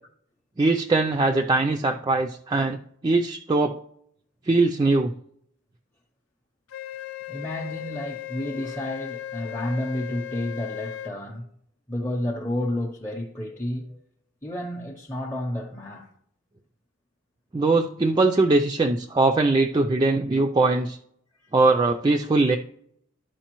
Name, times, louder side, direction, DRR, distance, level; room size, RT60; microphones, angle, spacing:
voice 1, 0.6-2.8 3.0-3.7 4.5-5.1 17.5-21.0 21.5-22.6, right 3 dB, 20° right, 0.3 m, -21 dB
Wind instrument woodwind instrument, 6.7-11.2, left 12 dB, 85° left, 0.4 m, -37 dB
voice 2, 7.3-11.5 11.9-14.0 14.4-16.1, left 1 dB, 10° left, 0.6 m, -31 dB
12.5 x 4.8 x 3.0 m
head